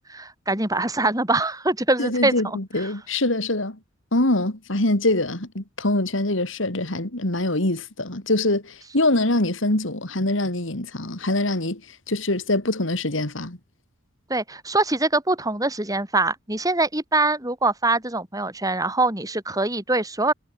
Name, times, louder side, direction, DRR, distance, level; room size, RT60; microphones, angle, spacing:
voice 1, 0.1-2.6 14.3-20.3, right 2 dB, 20° right, 5.4 m, -23 dB
voice 2, 2.0-3.8 4.1-13.6, left 2 dB, 75° left, 3.4 m, -24 dB
head